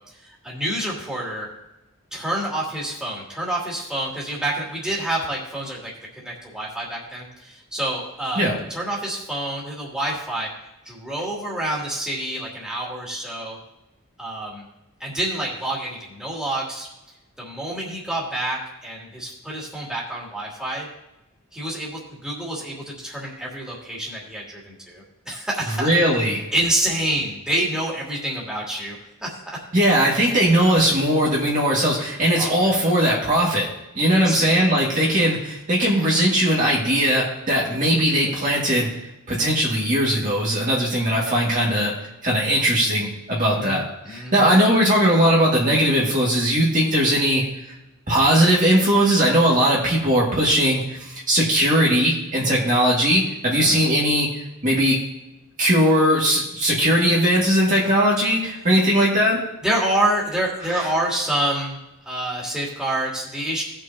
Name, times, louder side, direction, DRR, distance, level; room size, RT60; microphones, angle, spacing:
voice 1, 0.0-1.5 2.1-5.9 6.2-8.4 8.7-10.5 10.8-13.6 14.2-14.6 15.0-16.9 17.4-20.9 21.5-25.9 26.5-29.6 32.3-32.7 34.1-34.4 34.9-35.2 43.4-44.5 53.5-53.8 59.6-61.8 62.1-63.6, right 1 dB, 5° right, -5 dB, 2.5 m, -27 dB
voice 2, 25.8-26.4 29.7-33.7 34.0-38.9 39.3-41.9 42.2-47.4 48.1-54.3 54.6-55.0 55.6-59.4 60.7-60.9, equal, 35° right, -4 dB, 1.9 m, -19 dB
18.5 x 6.2 x 2.8 m, 0.94 s
head